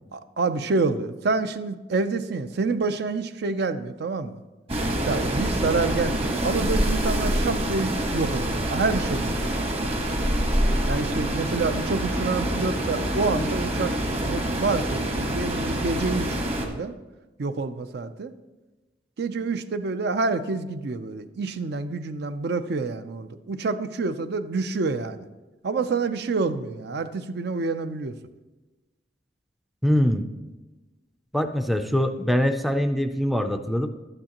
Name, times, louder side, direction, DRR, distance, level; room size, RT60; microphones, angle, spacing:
voice 1, 0.1-4.4 5.0-10.1 10.9-16.9 17.4-18.3 19.2-25.2 25.6-28.1, right 3 dB, 60° right, 11 dB, 0.5 m, -28 dB
sound 1, 4.7-16.7, right 1 dB, 35° right, 1.3 m, -26 dB
voice 2, 29.8-30.2 31.3-33.9, equal, ahead, 7 dB, 0.4 m, -23 dB
12.0 x 8.8 x 2.9 m, 1.1 s
head